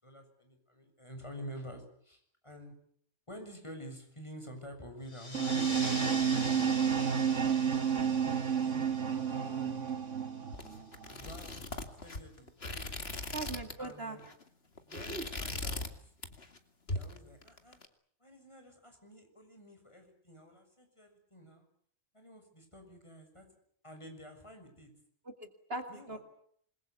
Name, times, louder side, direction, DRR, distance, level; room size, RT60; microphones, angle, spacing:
voice 1, 0.0-2.7 3.3-7.4 8.0-10.0 11.1-11.7 12.0-13.1 13.8-14.2 14.9-16.1 16.9-17.8 18.2-21.7 22.1-23.5 23.8-24.9 25.9-26.2, equal, 25° left, 4 dB, 6.9 m, -49 dB
sound 1, 5.1-10.3, left 1 dB, 85° left, 5.9 m, -43 dB
sound 2, 5.3-11.3, right 7 dB, 80° right, 1.7 m, -31 dB
sound 3, 10.5-13.9 14.2-14.4 14.8-15.9 16.2-16.6 16.9-17.8, left 2 dB, 55° left, 2.6 m, -39 dB
voice 2, 13.3-14.2 14.9-15.3 25.4-26.2, right 3 dB, 55° right, 7 dB, 2.6 m, -40 dB
27.0 x 22.0 x 8.3 m, 0.64 s
omnidirectional pair, 1.2 m